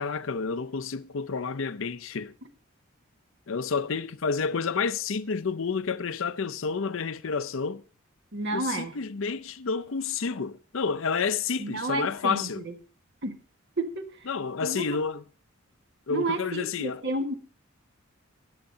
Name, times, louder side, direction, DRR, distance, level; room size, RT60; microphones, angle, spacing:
voice 1, 0.0-2.3 3.5-7.8 8.5-12.6 14.3-15.2 16.1-17.0, left 5 dB, 65° left, 0.6 m, -30 dB
voice 2, 8.3-8.9 11.6-12.7 13.2-13.3 13.8-14.0 14.6-15.0 16.1-17.3, right 2 dB, 55° right, 1.6 m, -31 dB
22.0 x 8.1 x 2.8 m
head